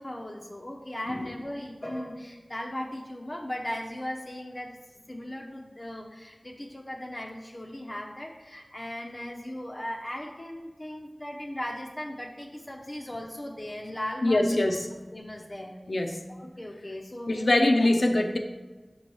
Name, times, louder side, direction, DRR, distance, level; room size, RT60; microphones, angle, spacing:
voice 1, 0.0-4.8 5.1-14.6 15.1-15.8 16.3-17.9, left 1 dB, 35° left, 0 dB, 0.6 m, -38 dB
voice 2, 14.2-14.9 15.9-16.2 17.3-18.4, left 1 dB, 75° left, 4 dB, 0.5 m, -23 dB
6.0 x 3.1 x 5.4 m, 1.2 s
wide cardioid pair, 55°, 0 cm